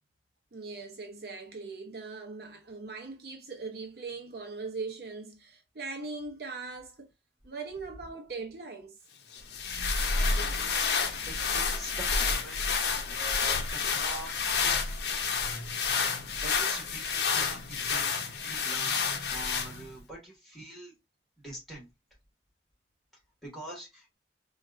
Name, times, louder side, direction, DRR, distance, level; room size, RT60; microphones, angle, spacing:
voice 1, 0.5-7.1 7.4-9.0, right 4 dB, 60° right, 0.7 m, -40 dB
sound 1, 9.3-20.0, left 5 dB, 65° left, 0.7 m, -29 dB
voice 2, 10.2-10.6 11.0-14.4 14.6-14.9 16.4-19.0 19.3-20.9 21.4-21.9 23.4-24.2, right 1 dB, ahead, 1.6 m, -45 dB
4.3 x 2.4 x 2.4 m
head